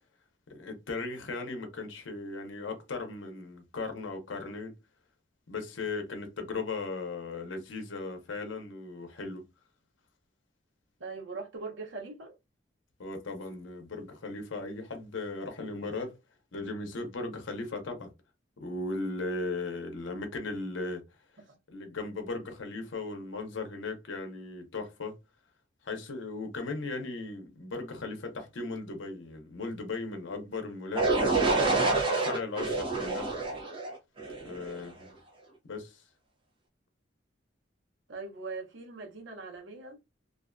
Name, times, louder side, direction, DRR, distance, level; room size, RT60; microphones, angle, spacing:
voice 1, 0.5-4.7 5.5-9.4 13.0-16.1 16.5-18.1 18.6-21.0 21.7-25.2 25.8-31.1 32.0-33.3 34.4-35.1 35.7-36.0, left 3 dB, 80° left, 0.7 m, -37 dB
voice 2, 11.0-12.3 21.5-21.6 38.1-40.0, right 3 dB, 80° right, 0.9 m, -41 dB
sound 1, 31.0-34.8, right 3 dB, 25° right, 0.5 m, -27 dB
2.5 x 2.2 x 2.4 m
head